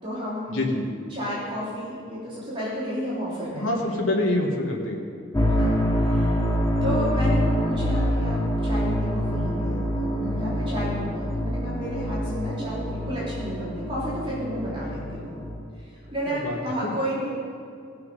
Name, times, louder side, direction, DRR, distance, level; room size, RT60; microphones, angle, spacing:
voice 1, 0.0-0.6 1.1-4.0 5.5-6.4 6.8-15.3 15.8-17.3, equal, 25° right, -8 dB, 3.2 m, -32 dB
voice 2, 0.5-0.8 3.5-5.0 16.3-16.6, left 1 dB, 85° left, -2 dB, 1.5 m, -25 dB
sound 1, 5.3-15.6, equal, 15° left, 1.0 m, -25 dB
18.0 x 6.7 x 5.5 m, 2.4 s
head